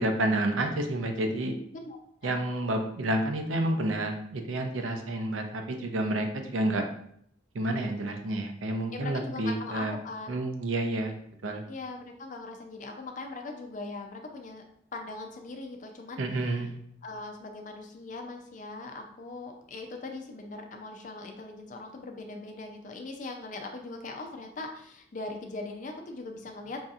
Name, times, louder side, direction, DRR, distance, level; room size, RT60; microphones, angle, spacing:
voice 1, 0.0-1.5 2.2-6.9 7.5-9.9 10.3-11.2 11.4-11.6 16.2-16.8, right 1 dB, 85° right, 5 dB, 0.5 m, -29 dB
voice 2, 8.9-10.5 11.7-14.6 14.9-16.7 17.0-26.8, left 3 dB, 40° left, 3 dB, 0.4 m, -40 dB
5.4 x 2.7 x 2.4 m, 0.68 s
head